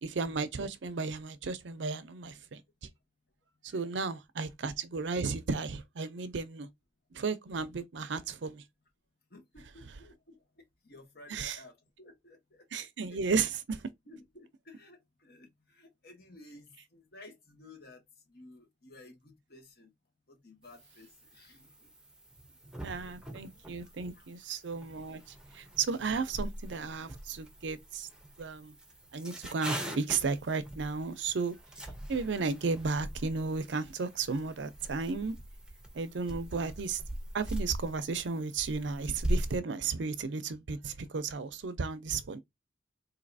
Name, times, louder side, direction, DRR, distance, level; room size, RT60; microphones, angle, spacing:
voice 1, 0.0-2.6 3.6-6.7 7.1-8.6 11.3-11.6 12.7-13.8 22.8-25.2 25.5-28.1 28.4-28.7 29.1-31.6 32.1-35.4 35.9-37.0 37.3-42.4, right 4 dB, 80° right, 0.6 m, -34 dB
voice 2, 9.3-10.4 10.8-13.4 14.1-18.0 18.3-19.9 20.3-21.9 23.5-24.3, left 2 dB, 60° left, 1.6 m, -55 dB
sound 1, 20.6-39.6, right 1 dB, 5° right, 0.7 m, -41 dB
4.0 x 2.8 x 2.6 m
head